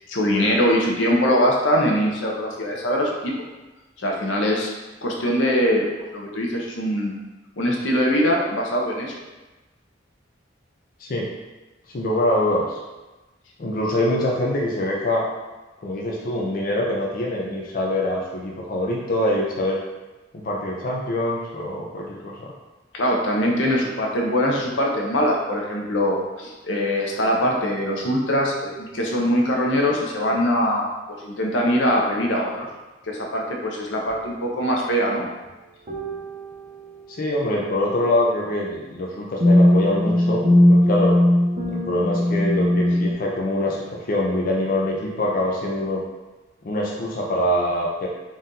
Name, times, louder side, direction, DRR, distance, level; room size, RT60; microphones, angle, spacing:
voice 1, 0.1-3.3 4.0-4.7 5.0-5.9 6.1-7.2 7.6-9.1 22.9-32.7 33.1-35.3, equal, 85° left, -1 dB, 0.8 m, -22 dB
voice 2, 11.0-11.3 11.9-12.8 13.6-15.2 15.8-19.8 20.3-22.5 37.2-41.2 41.7-46.0 46.6-48.1, left 1 dB, 50° left, -3 dB, 0.5 m, -24 dB
sound 1, 34.1-34.3 35.9-37.0 39.4-43.1, left 1 dB, 45° right, 0.8 m, -19 dB
4.1 x 2.5 x 3.7 m, 1.1 s
head